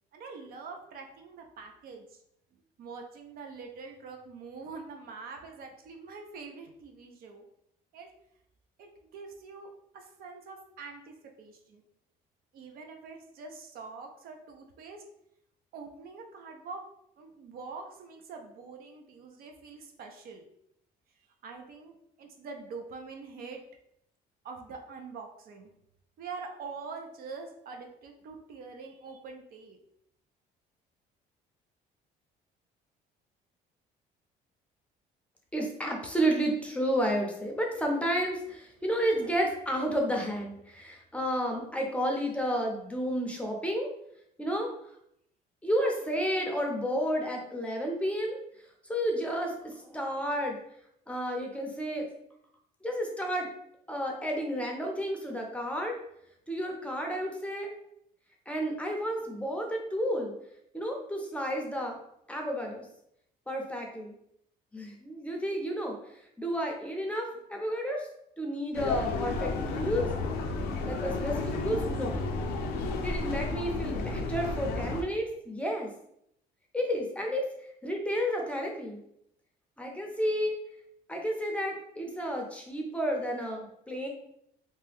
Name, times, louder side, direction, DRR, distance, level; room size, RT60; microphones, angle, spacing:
voice 1, 0.1-2.2 2.8-7.4 7.9-8.1 8.8-9.7 9.9-11.8 12.5-15.0 15.7-16.8 17.2-20.4 21.4-23.6 24.4-25.7 26.2-29.8, right 4 dB, 60° right, 3 dB, 0.5 m, -44 dB
voice 2, 35.5-43.9 44.4-44.7 45.6-48.4 48.8-50.6 51.1-52.1 52.8-53.5 53.9-56.0 56.5-57.7 58.5-60.3 60.7-62.0 62.3-62.9 63.5-64.2 64.7-68.1 68.4-70.1 70.8-72.2 73.0-75.9 76.7-77.5 77.8-79.0 79.8-80.6 81.1-84.1, equal, 5° left, 1 dB, 0.6 m, -31 dB
sound 1, 68.7-75.0, left 3 dB, 80° left, 0.5 m, -32 dB
2.8 x 2.2 x 3.3 m, 0.74 s
cardioid pair, 110°, 17 cm